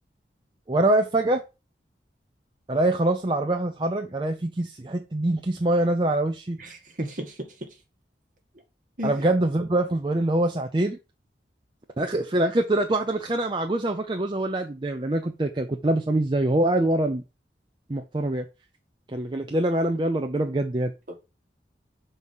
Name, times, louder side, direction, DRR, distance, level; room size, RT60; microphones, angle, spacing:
voice 1, 0.7-1.4 2.7-6.6 9.0-11.0 12.0-17.2 17.9-18.5 19.1-20.9, right 1 dB, 25° right, 0.5 m, -24 dB
voice 2, 6.6-7.7 9.0-9.2, equal, 45° right, 1.5 m, -34 dB
6.1 x 4.0 x 5.4 m
head